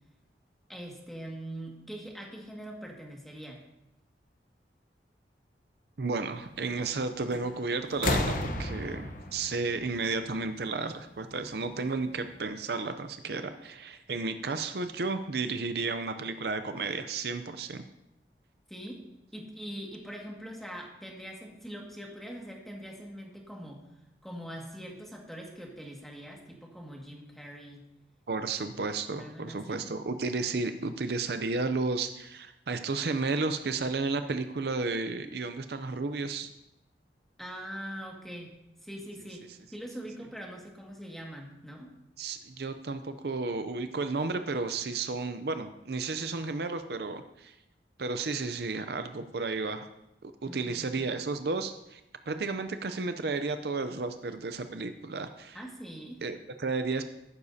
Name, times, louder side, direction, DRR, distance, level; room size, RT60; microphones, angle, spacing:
voice 1, 0.7-3.6 13.4-13.5 18.7-19.0 19.3-23.8 24.2-27.9 29.2-29.9 37.4-38.5 38.8-39.4 39.7-41.9 50.4-50.9 55.5-56.2, equal, ahead, -1 dB, 1.9 m, -43 dB
voice 2, 6.0-17.8 28.3-36.5 42.2-47.6 48.0-49.9 50.2-52.0 52.3-55.6 56.2-57.0, right 3 dB, 65° right, 9 dB, 0.6 m, -33 dB
sound 1, 7.3-7.6 7.9-10.7 11.8-11.9, left 2 dB, 50° left, 1.0 m, -33 dB
14.5 x 12.0 x 2.8 m, 0.88 s
head